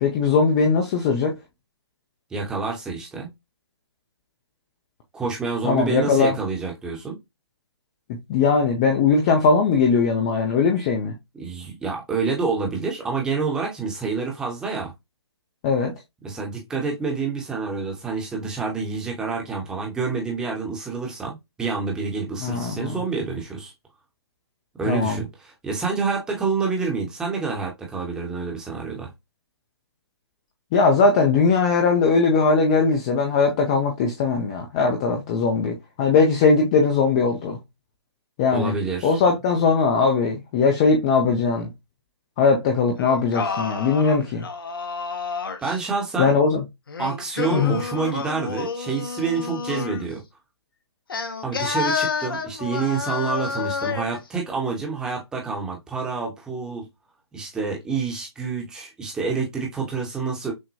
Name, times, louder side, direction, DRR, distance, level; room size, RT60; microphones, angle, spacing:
voice 1, 0.0-1.3 5.6-6.3 8.3-11.1 15.6-15.9 22.4-22.9 24.9-25.2 30.7-37.6 38.4-38.7 39.0-41.7 42.4-44.4 46.2-46.6 47.5-47.8, left 4 dB, 15° left, 0.4 m, -20 dB
voice 2, 2.3-3.3 5.1-7.1 11.3-14.9 16.2-23.7 24.8-29.1 38.5-39.2 45.6-46.4 47.0-50.2 51.4-56.9 57.3-60.5, right 4 dB, 5° right, 0.8 m, -28 dB
Singing, 43.0-45.8 46.9-50.1 51.1-54.2, left 5 dB, 50° left, 0.8 m, -29 dB
6.2 x 2.1 x 2.6 m
figure-of-eight pair, 145°, 14 cm